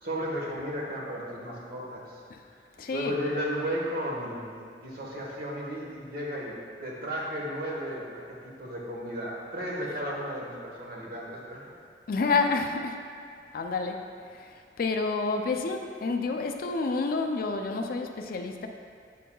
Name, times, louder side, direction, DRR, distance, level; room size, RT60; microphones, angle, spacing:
voice 1, 0.0-2.2 2.9-6.5 6.8-11.6, equal, 55° right, -4 dB, 1.2 m, -34 dB
voice 2, 2.8-3.2 12.1-13.0 13.5-14.0 14.4-18.7, left 4 dB, 55° left, 4 dB, 0.4 m, -29 dB
8.3 x 5.3 x 2.3 m, 2.2 s
head